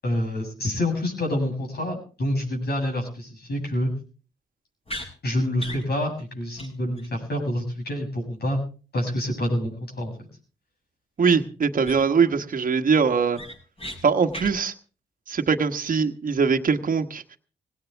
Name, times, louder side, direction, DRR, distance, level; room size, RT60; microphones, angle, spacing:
voice 1, 0.0-3.9 5.2-8.6 8.9-10.1, left 1 dB, 65° left, 1 dB, 7.9 m, -27 dB
sound 1, 4.9-5.1 5.6-5.8 6.2-6.3 6.6-6.7 7.0-7.1 11.3-11.4 11.8-12.2 12.6-12.7 13.1-14.0 14.3-14.5, equal, 35° left, 6.8 m, -36 dB
voice 2, 11.2-13.4 14.0-14.7 15.3-17.4, right 5 dB, 50° right, 6 dB, 1.4 m, -22 dB
19.5 x 17.5 x 3.5 m, 0.37 s
supercardioid pair, 50°, 18 cm